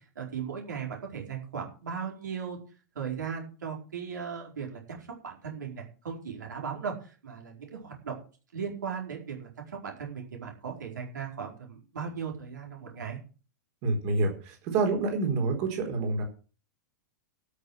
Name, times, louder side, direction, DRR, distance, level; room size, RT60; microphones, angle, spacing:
voice 1, 0.0-2.6 2.9-8.2 8.5-13.2, right 6 dB, 80° right, 1 dB, 4.7 m, -37 dB
voice 2, 13.8-16.2, right 3 dB, 50° right, 3 dB, 4.3 m, -27 dB
12.5 x 6.8 x 7.8 m, 0.38 s
hypercardioid pair, 110°, 10 cm